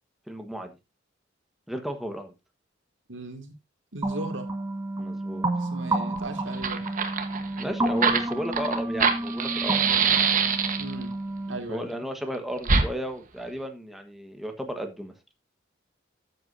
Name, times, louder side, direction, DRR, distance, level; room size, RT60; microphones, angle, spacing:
voice 1, 0.3-0.8 1.7-2.3 5.0-5.5 7.6-9.8 11.7-15.1, equal, ahead, 5 dB, 1.3 m, -34 dB
voice 2, 3.1-3.5 3.9-4.5 5.6-6.9 10.8-11.1 11.5-11.9, right 2 dB, 80° right, 5 dB, 2.2 m, -37 dB
sound 1, 4.0-11.6, right 2 dB, 20° right, 2.0 m, -30 dB
Fire, 6.2-6.3 6.5-11.0 12.6-12.9, right 5 dB, 45° right, 1.3 m, -24 dB
13.5 x 8.0 x 2.7 m, 0.23 s
head